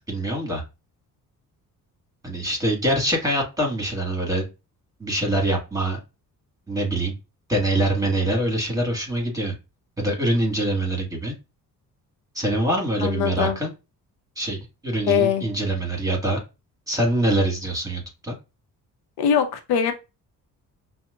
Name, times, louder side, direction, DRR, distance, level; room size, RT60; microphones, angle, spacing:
voice 1, 0.1-0.6 2.2-4.4 5.0-6.0 6.7-7.1 7.5-9.5 10.0-11.3 12.4-13.7 14.4-16.4 16.9-18.3, right 1 dB, 10° right, 1.8 m, -24 dB
voice 2, 13.0-13.6 15.1-15.4 19.2-19.9, left 7 dB, 75° left, 0.7 m, -21 dB
5.6 x 2.1 x 2.4 m
supercardioid pair, 70°, 39 cm